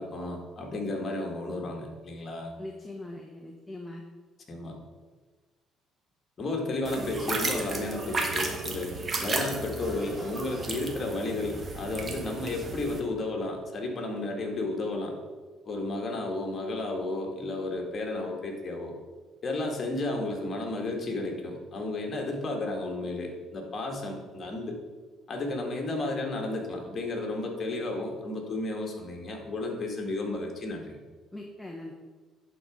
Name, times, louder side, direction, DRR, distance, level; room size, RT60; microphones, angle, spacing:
voice 1, 0.0-2.5 4.5-4.7 6.4-8.9 9.2-15.1 15.6-18.9 19.4-24.8 25.3-31.0, left 2 dB, 40° left, 1 dB, 1.8 m, -33 dB
voice 2, 2.6-4.0 31.3-31.9, left 1 dB, 5° left, -1 dB, 0.9 m, -41 dB
sound 1, 6.8-13.0, right 3 dB, 30° right, 1.2 m, -34 dB
11.0 x 4.1 x 4.9 m, 1.4 s
cardioid pair, 110°, 0 cm